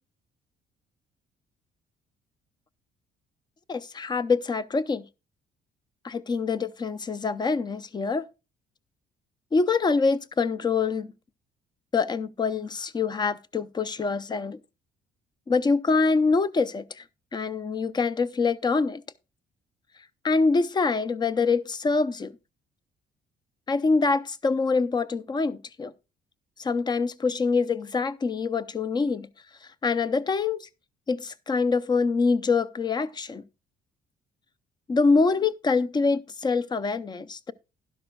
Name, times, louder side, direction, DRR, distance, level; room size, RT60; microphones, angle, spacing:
voice 1, 3.7-5.0 6.0-8.3 9.5-11.1 11.9-14.6 15.5-17.0 17.3-19.0 20.2-22.3 23.7-25.9 26.6-29.3 29.8-30.7 31.1-33.4 34.9-37.5, left 4 dB, 25° left, 0.5 m, -25 dB
12.0 x 11.5 x 2.3 m
cardioid pair, 130°, 17 cm